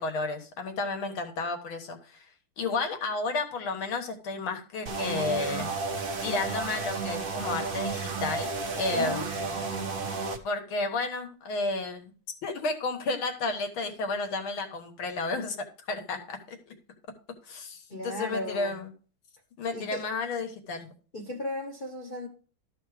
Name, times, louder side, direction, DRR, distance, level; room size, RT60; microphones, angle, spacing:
voice 1, 0.0-2.3 2.6-5.7 6.2-9.6 10.4-12.1 12.4-16.7 17.5-18.9 19.6-20.9, left 3 dB, 75° left, 2.2 m, -32 dB
sound 1, 4.9-10.4, right 4 dB, 45° right, 0.7 m, -32 dB
voice 2, 8.9-9.3 17.9-18.8 19.7-20.0 21.1-22.3, left 1 dB, 35° left, 0.9 m, -35 dB
13.0 x 4.3 x 4.8 m
omnidirectional pair, 2.3 m